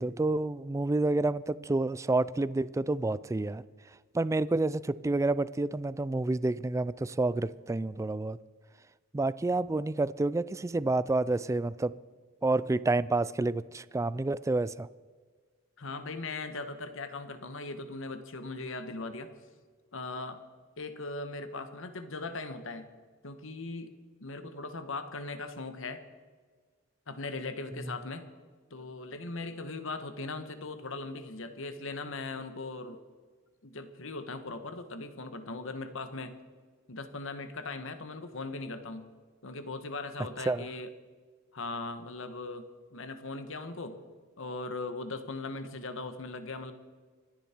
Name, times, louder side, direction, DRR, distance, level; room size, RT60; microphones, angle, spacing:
voice 1, 0.0-3.6 4.1-8.4 9.1-11.9 12.4-14.9 40.5-40.7, right 2 dB, 15° right, 0.3 m, -29 dB
voice 2, 15.8-19.3 19.9-20.4 20.8-22.9 23.2-23.9 24.2-26.0 27.1-28.2 28.7-33.0 33.6-36.3 36.9-39.1 39.4-40.9 41.5-44.0 44.4-46.7, left 3 dB, 65° left, 1.3 m, -39 dB
25.0 x 10.5 x 4.4 m
head